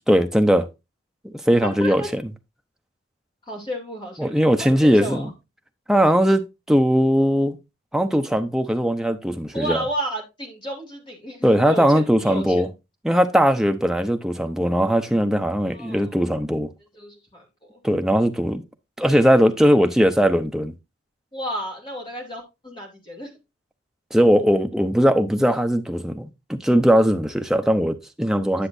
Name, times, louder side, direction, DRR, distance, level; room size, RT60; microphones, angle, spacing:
voice 1, 0.1-0.7 1.2-2.2 4.2-5.3 5.9-7.6 7.9-9.8 11.4-12.7 13.0-16.7 17.8-18.6 19.0-20.7 24.1-28.7, equal, 5° right, 0.6 m, -19 dB
voice 2, 1.6-2.1 3.5-5.3 9.5-12.6 15.7-16.1 16.9-17.5 21.3-23.3, equal, 25° left, 2.6 m, -32 dB
10.0 x 7.0 x 2.6 m
head